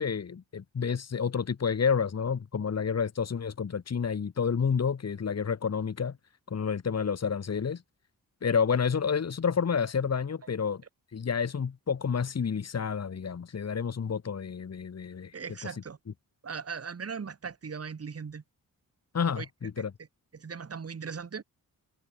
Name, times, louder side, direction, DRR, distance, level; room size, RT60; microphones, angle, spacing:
voice 1, 0.0-6.2 6.5-7.8 8.4-10.8 11.1-15.3 15.6-15.7 19.1-19.9, left 6 dB, 45° left, 2.9 m, -29 dB
voice 2, 15.3-16.0 16.4-18.4 19.4-19.5 19.8-19.9 20.3-21.4, right 6 dB, 40° right, 3.5 m, -38 dB
wide cardioid pair, 170°, 36 cm